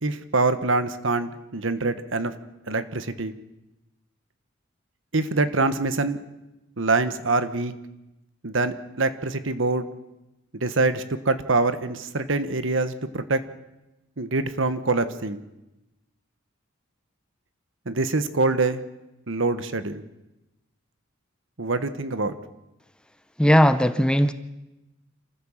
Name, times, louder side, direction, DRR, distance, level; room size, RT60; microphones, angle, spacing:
voice 1, 0.0-2.3 2.7-3.3 5.1-6.2 6.8-7.7 8.4-9.9 10.5-13.4 14.2-15.4 17.8-18.8 19.3-20.0 21.6-22.3, right 3 dB, 65° right, 11 dB, 1.3 m, -25 dB
voice 2, 23.4-24.3, equal, 5° left, 11 dB, 0.8 m, -18 dB
27.0 x 15.0 x 7.4 m, 0.97 s
head